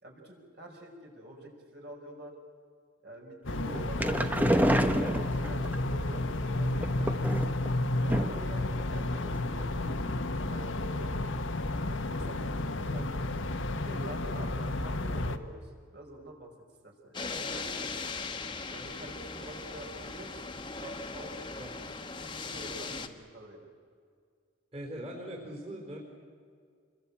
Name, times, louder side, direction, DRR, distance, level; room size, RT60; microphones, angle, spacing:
voice 1, 0.0-2.4 3.0-7.2 8.0-10.1 10.5-11.1 11.8-13.2 13.7-16.5 16.8-18.0 18.7-20.4 20.7-23.7, right 1 dB, 55° right, 1 dB, 5.4 m, -47 dB
sound 1, 3.4-15.4, left 2 dB, 75° left, 1.4 m, -31 dB
sound 2, 3.7-5.8 6.8-7.7 8.1-8.5 8.8-8.9 9.2-9.3, equal, 10° right, 1.0 m, -28 dB
sound 3, 17.1-23.1, left 4 dB, 25° left, 1.3 m, -39 dB
voice 2, 24.7-26.0, equal, 30° right, -1 dB, 4.3 m, -41 dB
27.0 x 21.5 x 8.7 m, 2.1 s
head